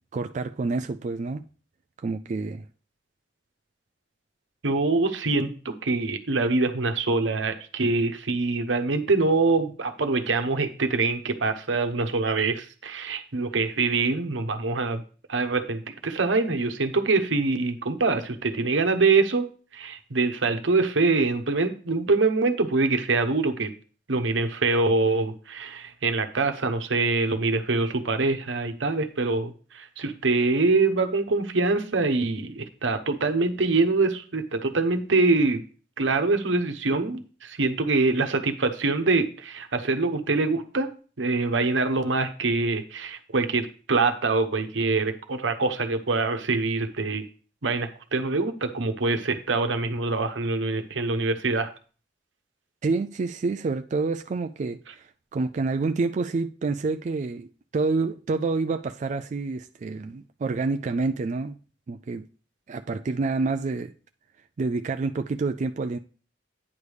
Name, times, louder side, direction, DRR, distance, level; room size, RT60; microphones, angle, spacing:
voice 1, 0.1-1.4 2.0-2.6 52.8-57.5 57.7-61.6 61.9-62.2 62.7-63.9 64.6-66.0, right 3 dB, 40° right, 0.3 m, -28 dB
voice 2, 4.6-15.0 15.3-23.7 24.1-35.6 36.0-40.9 41.2-47.2 47.6-51.7, right 3 dB, 90° right, 1.0 m, -24 dB
9.5 x 3.5 x 6.3 m
head